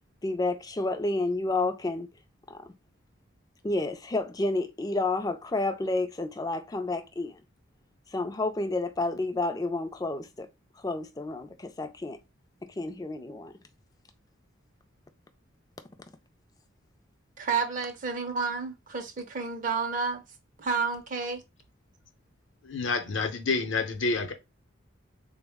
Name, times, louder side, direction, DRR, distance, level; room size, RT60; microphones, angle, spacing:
voice 1, 0.2-2.1 2.5-2.7 3.6-7.4 8.1-10.5 10.8-12.2 12.8-13.5, left 2 dB, 20° left, 0.3 m, -30 dB
voice 2, 17.4-20.2 20.6-21.4, right 5 dB, 40° right, 0.5 m, -30 dB
voice 3, 22.6-24.3, left 3 dB, 65° left, 0.7 m, -28 dB
3.7 x 2.1 x 3.4 m
head